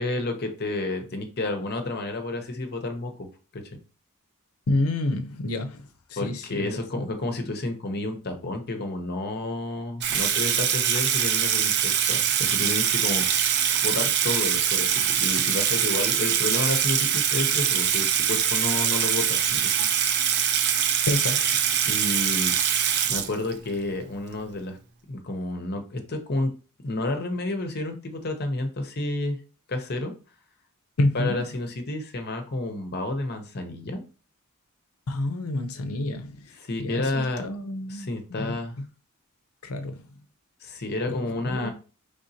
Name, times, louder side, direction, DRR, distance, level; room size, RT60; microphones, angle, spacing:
voice 1, 0.0-3.3 3.5-3.8 6.2-13.5 13.8-19.9 21.8-22.5 23.1-24.8 25.1-26.5 26.8-29.4 29.7-30.1 31.1-34.0 36.6-37.4 37.9-38.7 40.6-41.7, left 2 dB, 50° left, 0.8 m, -30 dB
voice 2, 4.7-6.8 21.1-21.6 31.0-31.4 35.1-36.5 36.8-38.6 39.6-40.1 41.1-41.7, left 2 dB, 85° left, 0.7 m, -29 dB
Water tap faucet / Sink (filling or washing), 10.0-23.7, right 9 dB, 50° right, 0.6 m, -23 dB
5.0 x 3.5 x 2.7 m
head